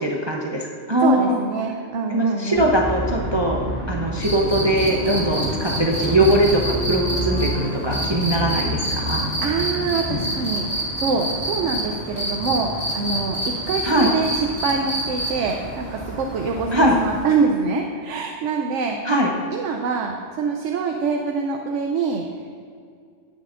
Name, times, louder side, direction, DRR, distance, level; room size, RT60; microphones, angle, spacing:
voice 1, 0.0-1.4 2.1-3.6 3.9-9.3 13.8-14.1 16.7-17.0 19.0-19.3, right 1 dB, 30° right, -1 dB, 0.6 m, -21 dB
voice 2, 1.0-2.7 9.4-19.0 19.5-22.2, right 5 dB, 80° right, 2 dB, 1.0 m, -25 dB
sound 1, 2.5-17.2, equal, 50° right, 2.0 m, -31 dB
sound 2, 4.2-11.8 12.2-15.5 17.1-17.2, right 1 dB, 25° left, 1.8 m, -27 dB
sound 3, 4.6-8.1, equal, 60° left, 1.9 m, -32 dB
11.0 x 9.3 x 2.5 m, 2.3 s
omnidirectional pair, 1.2 m